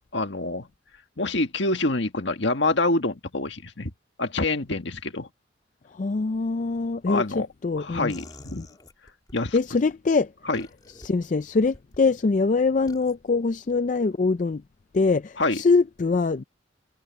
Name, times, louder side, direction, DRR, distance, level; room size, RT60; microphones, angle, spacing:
voice 1, 0.1-0.7 1.2-3.9 4.2-5.3 7.1-7.5 7.8-8.7 9.3-9.6 10.4-10.7 15.4-15.6, left 2 dB, 65° left, 1.7 m, -26 dB
voice 2, 5.9-8.1 8.6-8.7 9.5-10.3 11.0-14.6 14.9-16.4, left 4 dB, 40° left, 0.4 m, -23 dB
sound 1, 8.1-9.4 10.5-11.1 11.6-12.0 12.9-13.1, left 2 dB, 20° left, 3.4 m, -47 dB
head